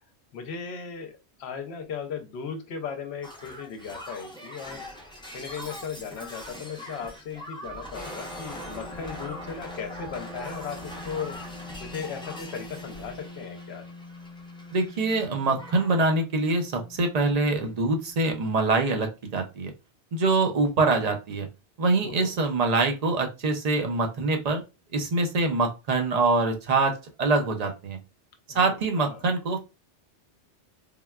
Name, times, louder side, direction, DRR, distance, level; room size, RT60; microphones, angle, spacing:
voice 1, 0.3-4.8 5.3-11.4 11.8-13.9 22.0-22.3 28.5-29.2, left 6 dB, 70° left, 7 dB, 0.8 m, -37 dB
Shatter, 3.2-15.3 15.5-16.1 17.2-17.3, left 1 dB, 5° left, 0.5 m, -42 dB
sound 1, 7.9-18.6, left 2 dB, 35° left, 0.8 m, -44 dB
voice 2, 14.7-19.7 20.1-21.5 21.8-24.6 24.9-28.0 28.5-29.6, right 3 dB, 50° right, 4 dB, 0.5 m, -24 dB
3.6 x 2.2 x 2.2 m, 0.27 s
omnidirectional pair, 1.2 m